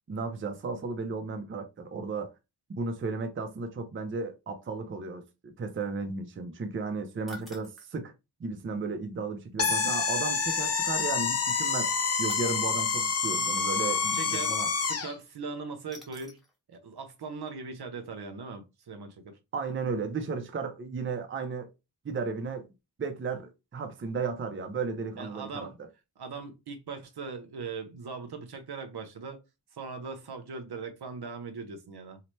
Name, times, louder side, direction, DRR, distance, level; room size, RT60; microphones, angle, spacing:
voice 1, 0.1-2.3 2.8-8.1 8.4-11.9 12.2-14.7 19.5-21.7 22.0-22.7 23.0-25.7, right 4 dB, 30° right, 0.5 m, -34 dB
sound 1, 7.3-7.9 10.3-10.4 12.3-12.6 15.9-16.6 17.0-17.1 17.5-17.6, right 1 dB, ahead, 0.9 m, -48 dB
sound 2, 9.6-15.1, left 5 dB, 40° left, 0.5 m, -28 dB
voice 2, 14.1-14.5 14.9-16.4 16.7-19.4 25.2-25.8 26.2-29.4 29.7-32.2, right 4 dB, 65° right, 0.7 m, -40 dB
2.8 x 2.1 x 3.0 m
wide cardioid pair, 90°, 42 cm